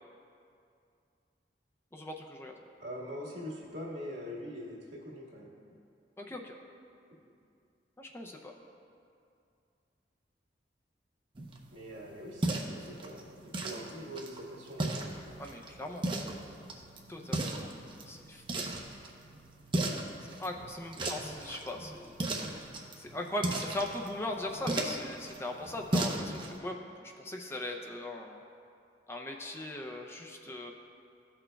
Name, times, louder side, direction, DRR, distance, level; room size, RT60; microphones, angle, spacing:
voice 1, 1.9-2.5 6.2-6.5 8.0-8.5 15.4-16.1 16.7-16.8 17.1-18.9 20.4-22.2 23.0-28.4 29.1-30.7, left 1 dB, 15° left, 2 dB, 0.5 m, -39 dB
voice 2, 2.8-5.5 11.7-15.1 21.0-21.2, equal, 85° right, -4 dB, 1.7 m, -43 dB
sound 1, 11.3-26.6, right 2 dB, 30° right, 0.6 m, -37 dB
14.5 x 6.1 x 2.2 m, 2.5 s
head